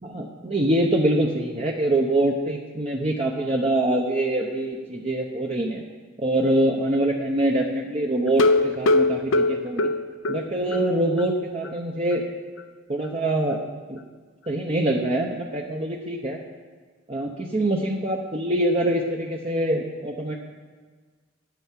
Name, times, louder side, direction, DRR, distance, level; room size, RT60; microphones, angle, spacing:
voice 1, 0.0-5.8 6.2-9.9 10.3-12.2 12.9-13.6 13.9-14.0 14.5-16.4 17.1-20.4, right 1 dB, 30° right, -1 dB, 0.9 m, -24 dB
sound 1, 8.3-10.9 11.2-11.3 11.6-11.7 12.1-12.2, left 2 dB, 75° left, 0.8 m, -21 dB
9.6 x 9.2 x 7.5 m, 1.5 s
head